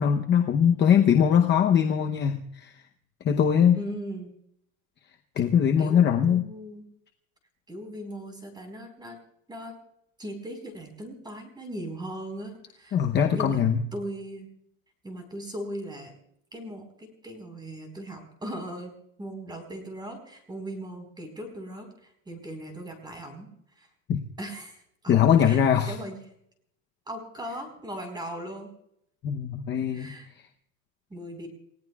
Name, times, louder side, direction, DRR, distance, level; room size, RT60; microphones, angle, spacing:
voice 1, 0.0-2.8 3.2-3.8 5.4-6.5 12.9-13.8 24.1-24.2 25.1-25.9 29.2-30.1, left 8 dB, 25° left, 3 dB, 0.8 m, -21 dB
voice 2, 3.7-4.3 5.8-6.8 7.7-9.2 9.5-9.8 10.2-13.0 13.3-13.6 13.9-14.5 15.0-16.1 16.5-18.9 19.2-21.9 22.3-23.5 23.8-23.9 24.4-24.8 25.0-25.6 25.9-26.2 27.1-28.7 29.9-30.3 31.1-31.5, right 1 dB, 10° right, 5 dB, 4.4 m, -38 dB
30.0 x 16.5 x 2.4 m, 0.73 s
supercardioid pair, 160°, 43 cm